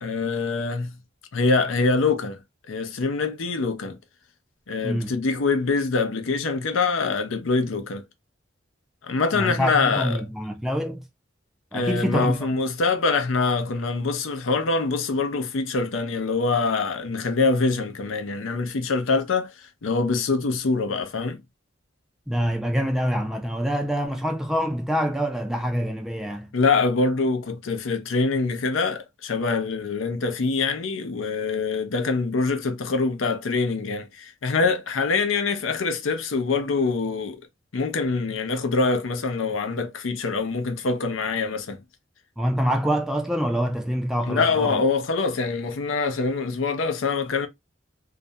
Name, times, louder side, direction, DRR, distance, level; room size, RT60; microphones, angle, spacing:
voice 1, 0.0-0.9 1.3-2.4 2.7-4.0 4.7-8.0 9.0-10.2 11.7-19.5 19.8-21.4 26.5-37.4 37.7-41.8 44.3-47.5, left 4 dB, 85° left, 0.5 m, -24 dB
voice 2, 4.8-5.1 9.3-11.0 11.7-12.4 22.3-26.5 42.4-44.8, equal, ahead, 0.3 m, -25 dB
2.4 x 2.1 x 2.5 m
head